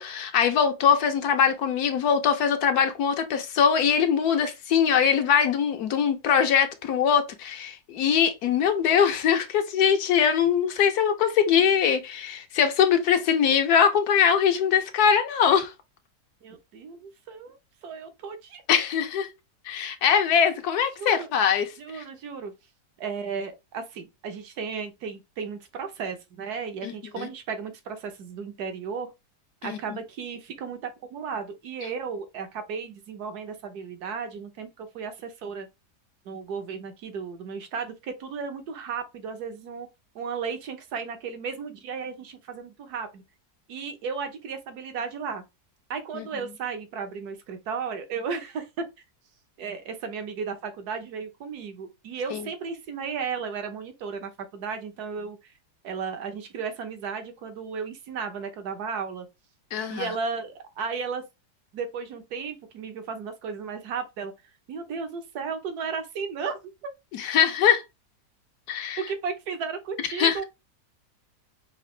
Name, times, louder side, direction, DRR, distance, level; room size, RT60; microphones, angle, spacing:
voice 1, 0.0-15.7 18.7-19.3 19.7-21.7 21.9-22.0 26.8-27.3 29.6-29.8 46.1-46.2 52.3-52.4 59.7-60.1 67.1-67.8 68.7-69.0 70.2-70.4, left 7 dB, 70° left, 1.1 m, -22 dB
voice 2, 16.4-18.6 21.0-21.3 21.8-22.5 23.0-29.1 29.6-35.7 36.2-39.9 40.1-43.2 43.7-45.4 45.9-48.9 49.6-55.5 55.8-59.3 59.9-61.2 61.7-64.3 64.7-66.9 69.1-70.5, right 5 dB, 70° right, 1.4 m, -34 dB
5.8 x 2.5 x 3.1 m
omnidirectional pair, 1.8 m